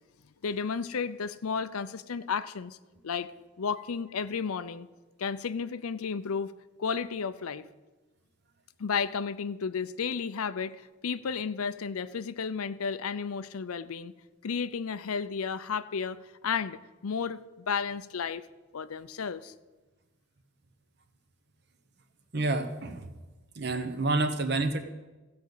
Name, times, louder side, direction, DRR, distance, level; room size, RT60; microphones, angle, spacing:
voice 1, 0.4-2.8 3.0-3.3 3.6-4.9 5.2-6.5 6.8-7.6 8.8-14.1 14.4-16.2 16.4-18.4 18.7-19.5, left 6 dB, 85° left, 15 dB, 0.5 m, -33 dB
voice 2, 22.3-23.1 23.6-24.8, right 2 dB, 50° right, 9 dB, 1.0 m, -28 dB
15.0 x 5.2 x 8.2 m, 1.2 s
head